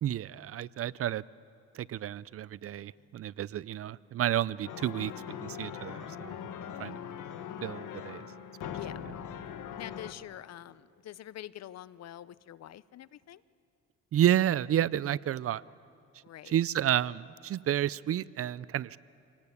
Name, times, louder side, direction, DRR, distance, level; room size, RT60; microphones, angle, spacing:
voice 1, 0.0-1.2 1.7-5.1 5.4-6.4 6.8-7.0 7.6-8.3 14.1-15.6 16.5-19.0, right 11 dB, 50° right, 21 dB, 0.5 m, -30 dB
sound 1, 4.6-10.1, left 8 dB, 80° left, 1.4 m, -41 dB
voice 2, 9.8-13.4 16.2-16.6, left 12 dB, 60° left, 19 dB, 0.7 m, -45 dB
26.0 x 19.0 x 8.4 m, 2.4 s
cardioid pair, 90°, 30 cm